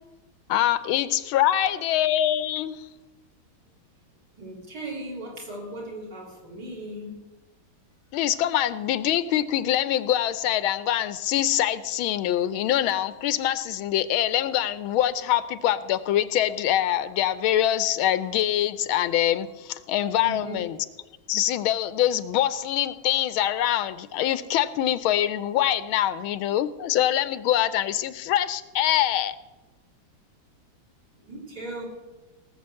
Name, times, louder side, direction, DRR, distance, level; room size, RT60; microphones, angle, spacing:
voice 1, 0.5-2.9 8.1-20.8 21.3-29.3, left 12 dB, 85° left, 14 dB, 1.5 m, -24 dB
voice 2, 4.3-7.2 20.2-20.6 31.2-31.9, right 1 dB, 50° right, -2 dB, 4.1 m, -37 dB
18.5 x 6.7 x 7.6 m, 1.1 s
omnidirectional pair, 2.2 m